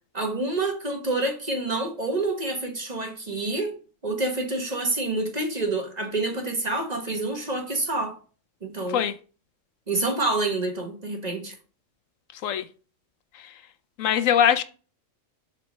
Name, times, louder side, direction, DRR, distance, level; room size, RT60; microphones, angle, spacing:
voice 1, 0.1-3.7 4.0-8.2 8.6-9.0 9.9-11.5, right 2 dB, 30° right, 1.4 m, -27 dB
voice 2, 14.0-14.6, left 9 dB, 80° left, 1.0 m, -21 dB
7.6 x 4.2 x 6.4 m
omnidirectional pair, 1.4 m